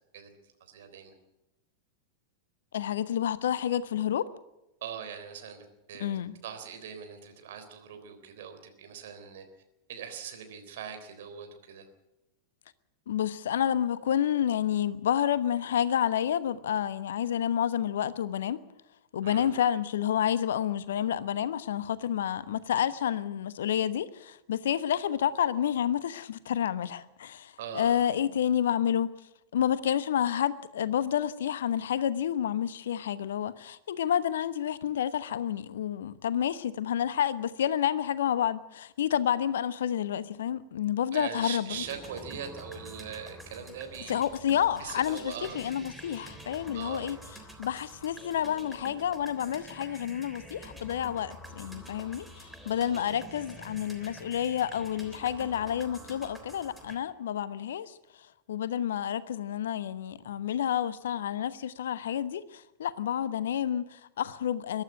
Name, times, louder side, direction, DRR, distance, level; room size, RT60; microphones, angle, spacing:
voice 1, 0.1-1.1 4.8-6.2 6.4-9.5 9.9-11.9 19.2-19.5 27.6-28.0 41.1-44.2 44.8-45.7 46.7-47.2 52.8-53.1, right 8 dB, 55° right, 3.8 m, -41 dB
voice 2, 2.7-4.3 6.0-6.3 13.1-18.6 19.1-29.1 29.5-41.7 44.1-47.2 47.6-57.9 58.5-64.8, left 9 dB, 60° left, 1.0 m, -29 dB
sound 1, 41.7-57.0, right 1 dB, 5° right, 3.4 m, -47 dB
22.5 x 12.0 x 10.0 m
figure-of-eight pair, 90°, 0 cm